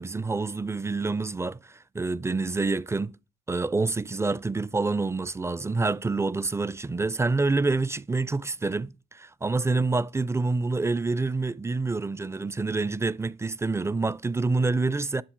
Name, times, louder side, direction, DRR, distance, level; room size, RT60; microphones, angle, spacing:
voice 1, 0.0-3.2 3.5-15.2, right 3 dB, 15° right, 0.4 m, -27 dB
10.5 x 7.2 x 4.5 m
cardioid pair, 90°, 20 cm